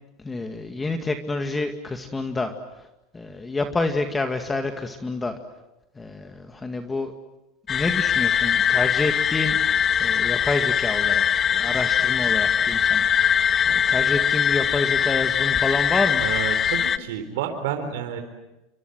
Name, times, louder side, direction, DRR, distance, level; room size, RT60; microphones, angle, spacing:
voice 1, 0.2-2.8 3.1-5.4 6.0-7.1 7.7-11.2 11.5-13.1 13.7-16.3, left 3 dB, 15° left, 6 dB, 2.2 m, -28 dB
sound 1, 7.7-17.0, left 8 dB, 35° left, 1.1 m, -21 dB
voice 2, 16.2-18.2, right 9 dB, 80° right, 6 dB, 3.9 m, -30 dB
29.0 x 25.5 x 8.0 m, 0.99 s
supercardioid pair, 115°, 0 cm